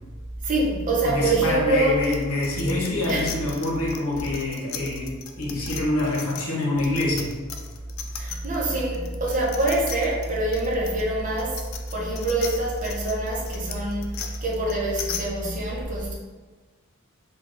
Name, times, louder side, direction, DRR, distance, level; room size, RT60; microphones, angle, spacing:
voice 1, 0.4-2.0 3.1-3.3 8.1-11.6 11.9-16.1, right 2 dB, 35° right, -4 dB, 0.6 m, -25 dB
voice 2, 1.0-7.4, left 2 dB, 90° left, -3 dB, 0.8 m, -26 dB
sound 1, 2.0-8.6 8.9-15.2, left 8 dB, 70° left, 0.3 m, -37 dB
3.7 x 2.3 x 2.4 m, 1.3 s
head